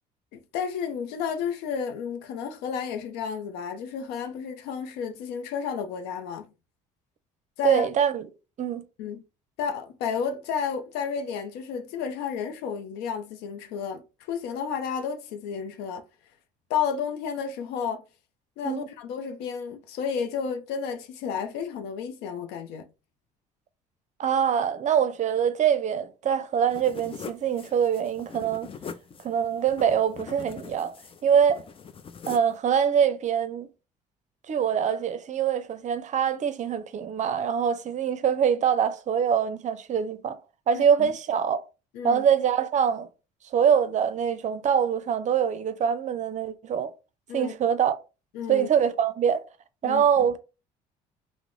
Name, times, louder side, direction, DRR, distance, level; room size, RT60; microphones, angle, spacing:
voice 1, 0.3-6.5 7.6-7.9 9.0-9.2 9.6-16.0 16.7-18.0 18.6-22.9 40.7-41.1 41.9-42.2 47.3-47.5 48.3-48.7 49.8-50.3, left 7 dB, 80° left, 0.5 m, -32 dB
voice 2, 7.6-8.3 8.6-8.9 18.6-18.9 24.2-28.7 29.2-30.9 31.2-31.6 32.3-33.7 34.5-40.4 40.7-41.6 42.0-43.1 43.5-46.9 47.3-48.0 48.5-49.4 49.8-50.4, right 8 dB, 45° right, 0.5 m, -24 dB
sound 1, 26.7-32.6, left 6 dB, 35° left, 0.5 m, -42 dB
3.0 x 2.0 x 3.6 m
supercardioid pair, 75°, 17 cm